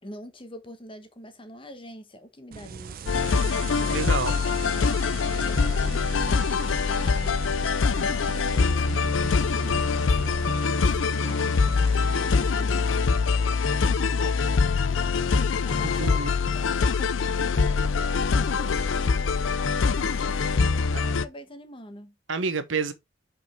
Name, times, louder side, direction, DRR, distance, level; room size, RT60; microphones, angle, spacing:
voice 1, 0.0-13.0 13.8-14.5 14.9-16.2 16.5-22.2, left 1 dB, 25° left, 1.3 m, -46 dB
sound 1, 2.5-12.5, right 6 dB, 50° right, 0.4 m, -40 dB
sound 2, 3.1-21.2, left 5 dB, 85° left, 0.5 m, -24 dB
voice 2, 3.9-4.3 15.8-16.3 22.3-22.9, right 4 dB, 85° right, 1.1 m, -28 dB
5.4 x 5.2 x 4.4 m
head